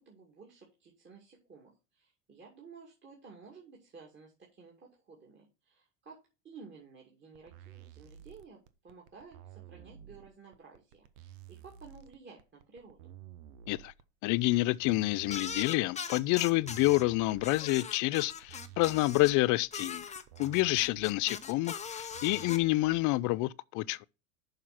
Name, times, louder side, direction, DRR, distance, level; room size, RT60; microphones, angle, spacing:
voice 1, 0.0-13.0, right 5 dB, 25° right, 2.5 m, -54 dB
sound 1, 7.3-23.3, right 10 dB, 70° right, 1.1 m, -52 dB
voice 2, 14.2-20.0 20.4-24.0, left 20 dB, 45° left, 0.5 m, -28 dB
sound 2, 15.3-17.0 17.4-19.3 19.7-22.6, left 6 dB, 15° left, 0.7 m, -41 dB
6.6 x 5.7 x 5.8 m
supercardioid pair, 105°, 43 cm